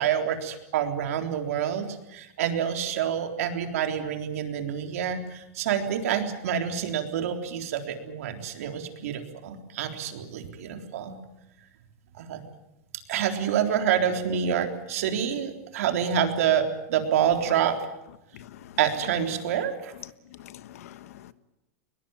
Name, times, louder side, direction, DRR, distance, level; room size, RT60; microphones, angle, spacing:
voice 1, 0.0-11.2 12.1-12.4 13.1-17.8 18.8-19.9, right 8 dB, 75° right, 3.8 m, -27 dB
voice 2, 18.3-18.8 20.4-21.3, left 12 dB, 75° left, 1.4 m, -46 dB
21.5 x 21.5 x 9.1 m
supercardioid pair, 145°, 8 cm